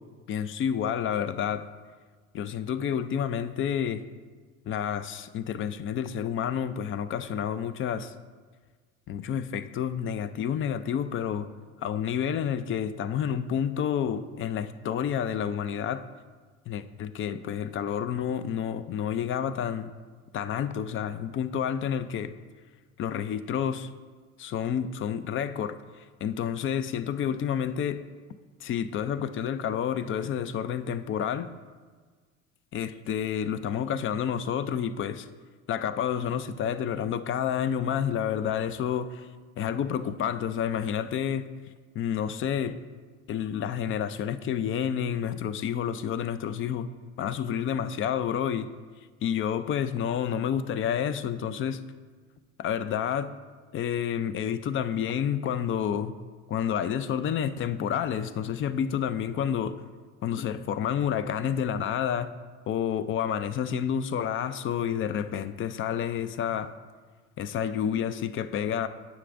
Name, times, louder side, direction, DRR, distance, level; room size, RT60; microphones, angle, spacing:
voice 1, 0.3-1.7 2.3-4.0 4.6-8.1 9.1-11.5 11.8-16.1 16.7-19.9 20.3-22.3 23.0-23.9 24.4-25.8 26.2-28.0 28.6-31.5 32.7-35.3 35.7-39.3 39.6-41.5 41.9-42.8 43.3-46.9 47.2-48.7 49.2-51.8 52.6-53.3 53.7-56.1 56.5-59.8 60.2-62.3 62.7-66.7 67.4-68.9, left 8 dB, 30° left, 13 dB, 0.4 m, -29 dB
9.5 x 7.0 x 2.5 m, 1.5 s
hypercardioid pair, 80°, 42 cm